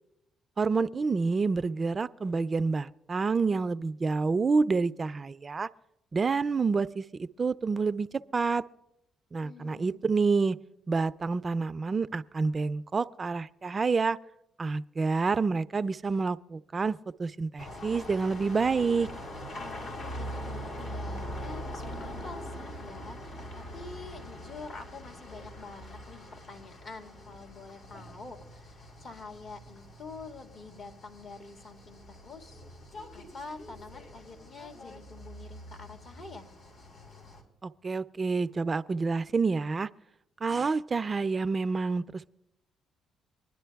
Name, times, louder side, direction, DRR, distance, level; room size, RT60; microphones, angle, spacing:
voice 1, 0.6-5.7 6.1-8.6 9.3-10.6 10.9-14.2 14.6-19.1 37.6-39.9 40.4-42.3, right 4 dB, 35° right, 0.3 m, -28 dB
voice 2, 9.4-10.0 19.5-32.6 33.1-36.5, left 4 dB, 55° left, 1.8 m, -46 dB
sound 1, 17.6-37.4, equal, 75° left, 3.7 m, -43 dB
24.0 x 10.5 x 2.3 m
supercardioid pair, 70°, 0 cm